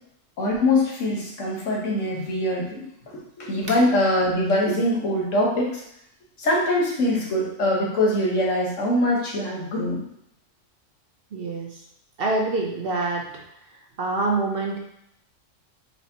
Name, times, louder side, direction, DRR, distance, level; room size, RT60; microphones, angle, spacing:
voice 1, 0.4-2.9 3.1-5.8 6.4-10.0, left 1 dB, 75° left, -3 dB, 1.4 m, -23 dB
voice 2, 11.3-11.7 12.2-13.2 14.0-14.8, right 3 dB, 55° right, 0 dB, 0.8 m, -25 dB
4.4 x 4.1 x 2.8 m, 0.75 s
omnidirectional pair, 1.3 m